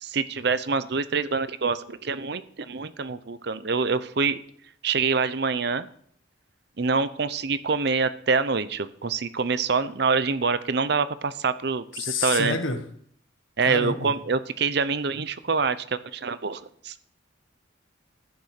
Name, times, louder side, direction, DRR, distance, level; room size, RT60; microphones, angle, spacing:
voice 1, 0.0-4.4 4.8-5.9 6.8-12.6 13.6-16.9, right 4 dB, 55° right, 14 dB, 0.7 m, -26 dB
voice 2, 11.9-12.8 13.6-14.1, left 4 dB, 85° left, 6 dB, 1.7 m, -28 dB
14.5 x 6.7 x 6.6 m, 0.62 s
head